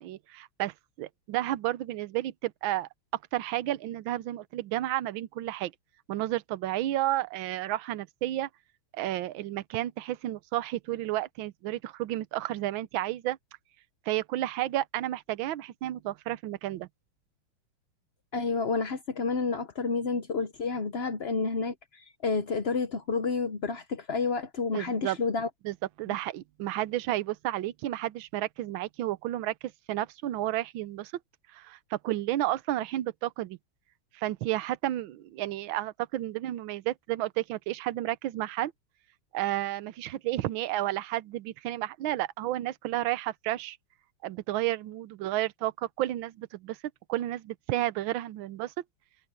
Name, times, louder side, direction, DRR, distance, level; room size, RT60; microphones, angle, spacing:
voice 1, 0.0-2.9 3.3-5.7 6.1-8.5 8.9-13.4 14.1-16.9 24.7-25.2 25.6-29.5 29.9-31.1 31.5-33.6 34.1-38.7 39.3-43.8 44.2-46.8 47.1-48.7, right 14 dB, 70° right, 1.5 m, -31 dB
voice 2, 18.3-25.5, left 4 dB, 80° left, 0.5 m, -30 dB
omnidirectional pair, 2.4 m